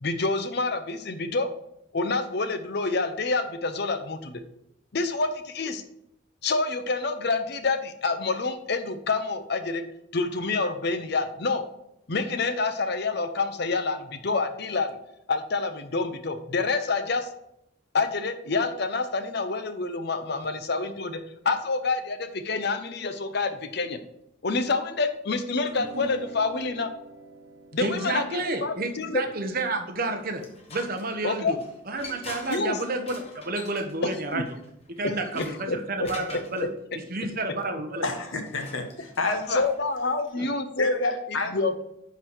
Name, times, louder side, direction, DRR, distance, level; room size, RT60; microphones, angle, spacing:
voice 1, 0.0-1.5 1.9-4.4 4.9-5.8 6.4-9.8 10.1-11.6 12.1-15.0 15.3-17.3 17.9-21.2 21.4-24.0 24.4-26.9 27.7-28.2 28.6-29.2 31.2-31.5 32.5-32.8 34.3-34.4 35.0-36.4 39.5-41.1 41.5-41.8, left 3 dB, 55° left, 9 dB, 0.7 m, -27 dB
sound 1, 25.7-32.2, right 1 dB, 80° right, 1.5 m, -46 dB
voice 2, 27.8-30.4 30.7-31.6 31.9-34.4 35.0-36.7 37.1-38.0 40.4-40.5, right 2 dB, 45° right, 5 dB, 1.0 m, -30 dB
sound 2, 30.2-36.6 38.0-40.3, left 3 dB, 30° left, 1.1 m, -45 dB
voice 3, 38.0-39.6 40.8-41.5, left 3 dB, 80° left, 5 dB, 1.3 m, -29 dB
9.8 x 4.1 x 4.6 m, 0.79 s
head